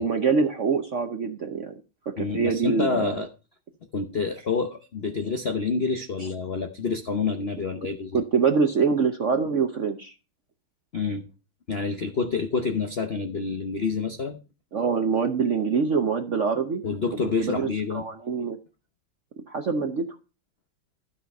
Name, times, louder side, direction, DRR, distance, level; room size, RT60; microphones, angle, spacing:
voice 1, 0.0-1.7 2.2-3.2 6.2-6.3 8.1-10.1 14.7-16.8 17.4-18.6 19.5-20.1, right 5 dB, 60° right, 6 dB, 0.8 m, -25 dB
voice 2, 2.2-3.3 3.9-8.2 10.9-11.2 11.7-14.4 16.8-18.0, left 4 dB, 55° left, 6 dB, 0.6 m, -28 dB
12.5 x 5.7 x 5.3 m, 0.32 s
omnidirectional pair, 2.3 m